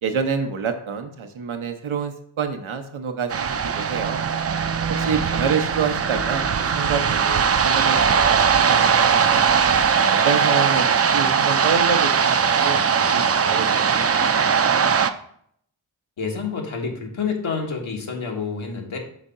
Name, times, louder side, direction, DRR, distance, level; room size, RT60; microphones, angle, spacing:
voice 1, 0.0-4.2 4.9-7.4 7.6-8.9 9.3-9.7 10.1-14.9, right 6 dB, 85° right, 6 dB, 0.8 m, -28 dB
sound 1, 3.3-15.1, right 6 dB, 35° right, 0.4 m, -20 dB
voice 2, 16.2-19.0, left 5 dB, 80° left, 1 dB, 1.3 m, -28 dB
5.0 x 3.7 x 5.4 m, 0.66 s
cardioid pair, 45°, 47 cm